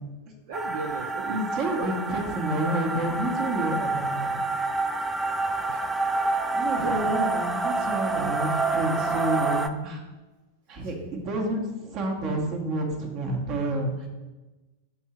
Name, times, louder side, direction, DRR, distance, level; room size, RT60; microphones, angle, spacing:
sound 1, 0.5-9.7, right 3 dB, 15° right, 0.4 m, -28 dB
voice 1, 0.5-1.4 1.8-1.9 5.7-6.1 6.8-7.2 10.8-10.9 11.3-11.4, right 4 dB, 55° right, 1 dB, 0.6 m, -36 dB
voice 2, 1.3-4.4 6.5-10.1 10.7-14.1, right 1 dB, 40° right, 1 dB, 1.3 m, -29 dB
6.9 x 3.7 x 4.4 m, 1.1 s
figure-of-eight pair, 90°, 0 cm